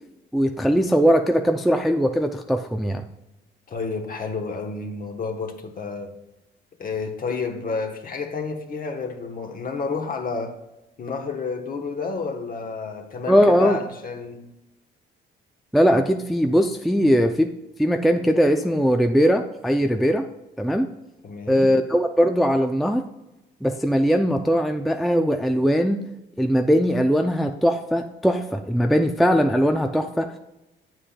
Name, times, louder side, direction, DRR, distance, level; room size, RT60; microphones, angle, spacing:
voice 1, 0.3-3.0 13.3-13.8 15.7-17.5 17.8-20.2 20.6-20.9 21.5-23.0 23.6-26.0 26.4-30.4, equal, ahead, 0.3 m, -20 dB
voice 2, 3.7-6.2 6.8-10.6 11.0-14.5 21.2-21.8, left 4 dB, 45° left, 1.1 m, -30 dB
8.5 x 7.5 x 2.2 m
cardioid pair, 90°, 20 cm